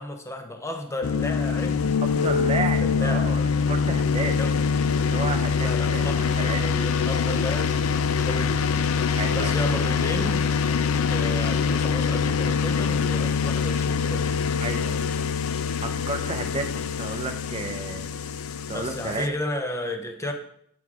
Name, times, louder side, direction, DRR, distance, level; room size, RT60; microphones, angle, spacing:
voice 1, 0.0-1.9 2.6-3.5 4.4-4.6 5.6-8.9 9.3-10.4 11.1-14.5 18.7-20.3, left 1 dB, 15° left, 5 dB, 0.7 m, -33 dB
sound 1, 1.0-19.3, left 5 dB, 75° left, 0.4 m, -24 dB
voice 2, 2.0-3.4 3.7-4.4 5.1-6.6 9.1-9.6 14.6-15.3 15.8-18.1 18.7-19.3, right 3 dB, 30° right, 6 dB, 0.6 m, -32 dB
7.8 x 4.7 x 3.6 m, 0.68 s
head